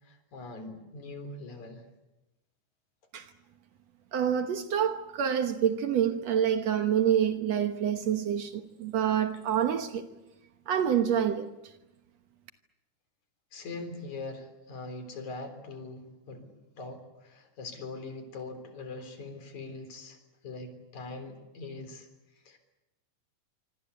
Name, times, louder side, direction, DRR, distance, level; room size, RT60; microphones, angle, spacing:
voice 1, 0.0-1.8 13.5-20.2 20.4-22.1 22.3-22.6, left 3 dB, 65° left, 5.1 m, -42 dB
voice 2, 4.1-10.0 10.7-11.5, right 9 dB, 65° right, 2.2 m, -27 dB
26.0 x 26.0 x 8.4 m
omnidirectional pair, 3.6 m